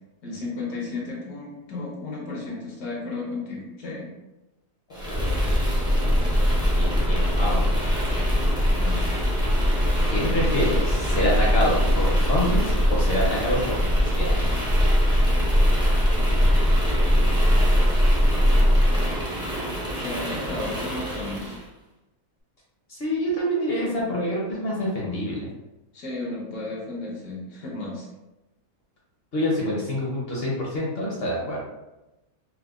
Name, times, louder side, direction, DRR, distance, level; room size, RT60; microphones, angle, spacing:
voice 1, 0.2-4.1 8.7-9.1 17.1-17.3 20.0-21.6 25.9-28.1, left 2 dB, 75° left, -4 dB, 1.3 m, -34 dB
voice 2, 4.9-5.3 6.7-7.7 10.1-12.6 12.9-14.4 22.9-25.4 29.3-31.6, equal, 50° left, -4 dB, 0.8 m, -26 dB
sound 1, 4.9-21.6, equal, 5° right, 0.4 m, -21 dB
4.6 x 2.1 x 2.4 m, 1.0 s
omnidirectional pair, 1.6 m